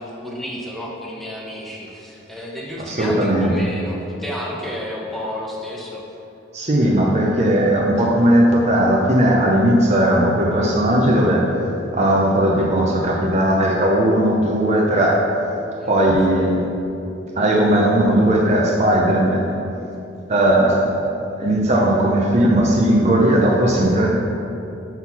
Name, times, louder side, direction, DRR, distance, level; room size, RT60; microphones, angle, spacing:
voice 1, 0.0-6.0 15.8-15.9, left 1 dB, ahead, -3 dB, 0.9 m, -31 dB
voice 2, 2.8-3.5 6.5-11.5 11.9-15.2 15.9-16.7 17.4-19.6 20.3-20.9 21.4-24.1, right 1 dB, 35° right, -2 dB, 0.6 m, -17 dB
5.6 x 4.2 x 5.9 m, 2.8 s
head